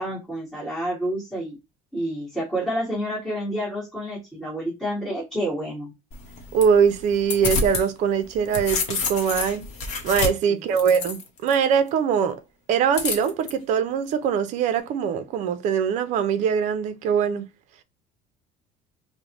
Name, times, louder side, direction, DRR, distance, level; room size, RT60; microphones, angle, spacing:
voice 1, 0.0-1.6 1.9-5.9 10.5-10.9, equal, 5° left, 1.5 m, -29 dB
sound 1, 6.1-7.9 8.2-11.5 12.9-13.5, left 4 dB, 45° left, 0.9 m, -28 dB
voice 2, 6.5-9.6 10.0-12.4 12.7-17.5, right 7 dB, 45° right, 0.5 m, -22 dB
5.2 x 2.1 x 3.0 m
cardioid pair, 175°, 17 cm